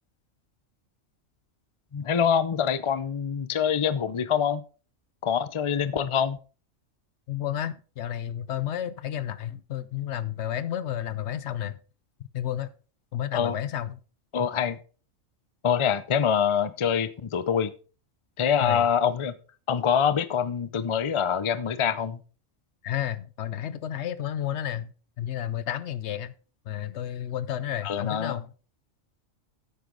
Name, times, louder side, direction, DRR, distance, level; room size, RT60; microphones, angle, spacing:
voice 1, 1.9-4.6 5.2-6.4 13.3-13.6 14.3-14.8 15.6-17.7 18.4-19.4 19.7-22.2 27.8-28.3, left 7 dB, 40° left, 0.4 m, -25 dB
voice 2, 7.3-11.8 12.3-12.7 13.1-14.0 18.6-18.9 22.8-26.3 26.7-28.5, left 11 dB, 65° left, 0.9 m, -31 dB
10.0 x 8.3 x 3.9 m
omnidirectional pair, 1.3 m